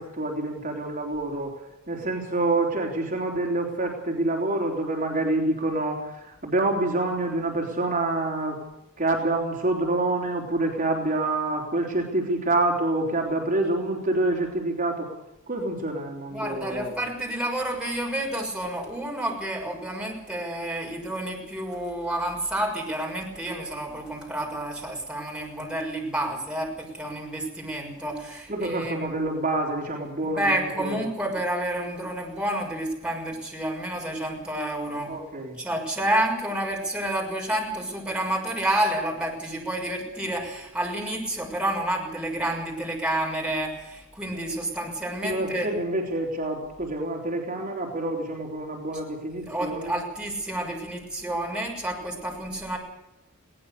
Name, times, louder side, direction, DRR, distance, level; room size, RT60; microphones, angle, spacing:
voice 1, 0.0-1.6 1.9-8.6 9.0-15.1 15.5-17.0 28.5-31.0 35.1-35.6 45.2-50.0, right 2 dB, 40° right, -1 dB, 3.7 m, -27 dB
voice 2, 16.3-29.1 30.3-35.1 35.6-45.7 49.4-52.8, right 1 dB, 5° right, -1 dB, 6.3 m, -29 dB
21.0 x 18.5 x 6.8 m, 0.89 s
head